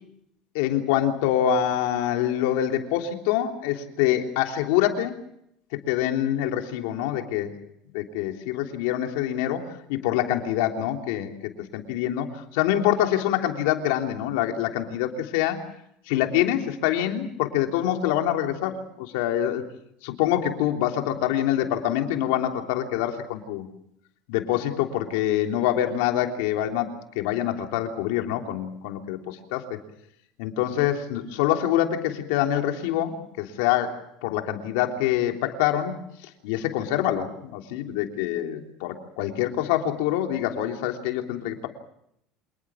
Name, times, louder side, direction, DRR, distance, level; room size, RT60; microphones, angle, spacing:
voice 1, 0.5-5.1 5.7-7.5 7.9-15.6 16.1-19.6 20.0-23.7 24.3-29.8 30.4-36.0 36.4-41.7, left 11 dB, 85° left, 4 dB, 3.3 m, -25 dB
27.0 x 20.0 x 7.3 m, 0.75 s
cardioid pair, 160°, 0 cm